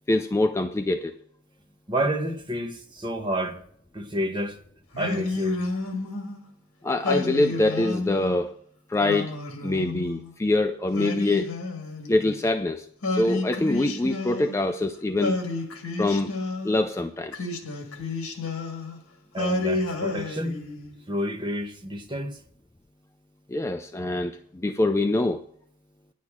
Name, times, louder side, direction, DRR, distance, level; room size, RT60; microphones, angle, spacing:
voice 1, 0.1-1.1 6.8-8.5 8.9-9.3 9.6-11.5 12.1-15.4 16.0-16.3 16.6-17.5 23.5-25.4, left 2 dB, 15° left, 0.3 m, -24 dB
voice 2, 1.9-3.6 3.9-4.6 5.0-5.6 19.3-20.6 21.1-22.4, equal, 20° right, 1.0 m, -29 dB
Singing, 4.9-6.4 7.0-8.4 9.0-10.3 10.9-12.5 13.0-14.8 15.2-16.8 17.3-19.0 19.4-21.0, left 2 dB, 70° left, 1.8 m, -31 dB
10.0 x 6.4 x 7.2 m
head